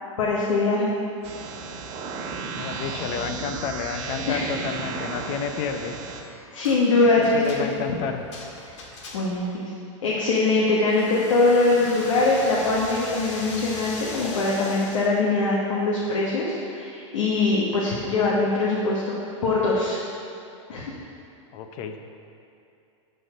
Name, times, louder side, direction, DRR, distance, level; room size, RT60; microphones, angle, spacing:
voice 1, 0.2-0.9 4.3-4.4 6.5-7.7 9.1-9.7 10.0-19.2 19.4-20.0 20.7-20.8, left 3 dB, 80° left, -5 dB, 1.4 m, -22 dB
sound 1, 1.2-6.2, right 4 dB, 35° right, 1.1 m, -34 dB
voice 2, 2.5-6.0 7.2-8.2 21.5-22.0, left 6 dB, 40° left, 6 dB, 0.7 m, -30 dB
sound 2, 6.6-6.8 7.2-9.5 10.9-15.1, left 2 dB, 65° left, 1.7 m, -39 dB
11.0 x 4.3 x 5.1 m, 2.6 s
supercardioid pair, 140°, 17 cm